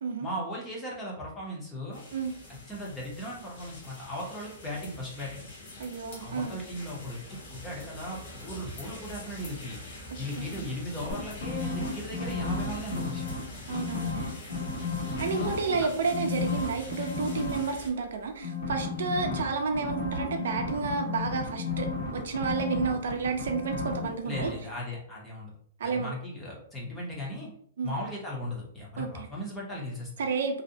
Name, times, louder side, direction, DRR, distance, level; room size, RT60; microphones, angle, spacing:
voice 1, 0.2-2.0 2.7-5.5 6.2-9.8 10.2-13.3 15.3-15.9 18.9-19.1 24.2-25.5 25.8-27.5 27.8-30.1, equal, 10° left, -3 dB, 0.6 m, -37 dB
sound 1, 1.9-17.9, left 1 dB, 45° left, 0.8 m, -44 dB
voice 2, 5.8-6.6 10.1-10.7 13.7-14.3 15.2-21.9 22.1-24.5 25.8-26.1 27.8-27.9 29.0-29.1 30.2-30.6, right 4 dB, 70° right, 5 dB, 0.4 m, -31 dB
sound 2, 11.1-13.4 13.7-15.7 16.1-17.6 18.4-24.1 24.3-24.5, left 4 dB, 80° left, 1.3 m, -33 dB
2.5 x 2.0 x 2.7 m, 0.63 s
hypercardioid pair, 170°, 0 cm